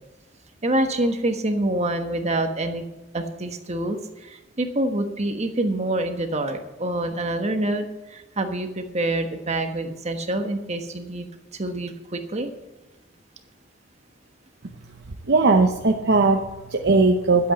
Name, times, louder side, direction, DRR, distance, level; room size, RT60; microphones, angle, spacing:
voice 1, 0.6-2.8 3.1-12.5, right 1 dB, 35° right, 6 dB, 1.3 m, -26 dB
voice 2, 14.6-17.5, right 3 dB, 60° right, 2 dB, 0.9 m, -20 dB
12.0 x 8.2 x 7.9 m, 1.1 s
head